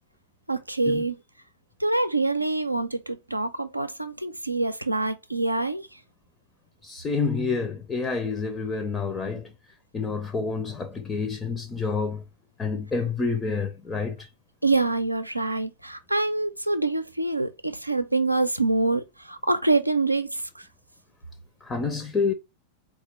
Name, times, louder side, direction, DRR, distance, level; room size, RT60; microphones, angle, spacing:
voice 1, 0.5-1.2 1.8-5.9 14.6-20.4, right 2 dB, 85° right, 0.5 m, -25 dB
voice 2, 6.8-9.5 9.9-12.2 12.6-14.3 21.6-22.3, left 4 dB, 20° left, 0.6 m, -28 dB
4.2 x 2.4 x 3.9 m
figure-of-eight pair, 90°, 0 cm